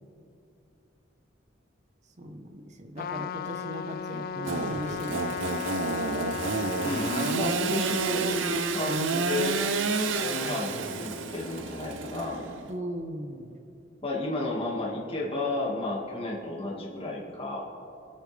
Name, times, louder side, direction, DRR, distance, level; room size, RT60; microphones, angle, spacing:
voice 1, 2.2-5.4 12.7-13.5, equal, 40° right, 6 dB, 1.0 m, -38 dB
Trumpet, 3.0-7.4, left 7 dB, 50° left, 0.3 m, -35 dB
Engine / Sawing, 4.5-12.7, right 4 dB, 75° right, 0.8 m, -30 dB
voice 2, 6.8-9.5 10.2-12.4 14.0-17.8, left 2 dB, 30° left, -4 dB, 1.9 m, -32 dB
25.5 x 8.9 x 3.4 m, 2.7 s
head